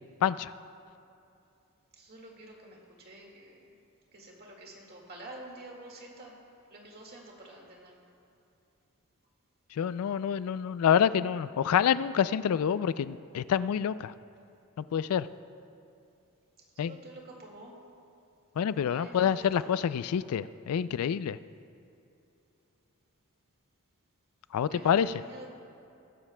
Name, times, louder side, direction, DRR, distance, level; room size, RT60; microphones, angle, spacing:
voice 1, 0.2-0.5 9.7-14.1 14.9-15.3 16.8-16.9 18.6-21.4 24.5-25.1, left 8 dB, 75° left, 15 dB, 0.3 m, -27 dB
voice 2, 1.9-3.7 4.1-6.4 6.7-8.0 16.8-17.8 18.7-19.7 24.7-25.5, right 1 dB, 45° right, -1 dB, 1.9 m, -48 dB
21.0 x 10.5 x 2.2 m, 2.7 s
head